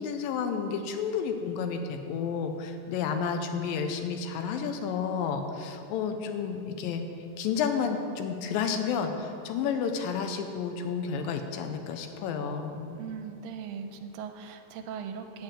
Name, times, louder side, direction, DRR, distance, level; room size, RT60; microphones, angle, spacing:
voice 1, 0.0-7.0 7.4-13.0, left 6 dB, 85° left, 6 dB, 2.4 m, -31 dB
voice 2, 12.9-15.4, right 7 dB, 80° right, 7 dB, 2.3 m, -39 dB
8.7 x 7.6 x 7.5 m, 2.7 s
omnidirectional pair, 4.1 m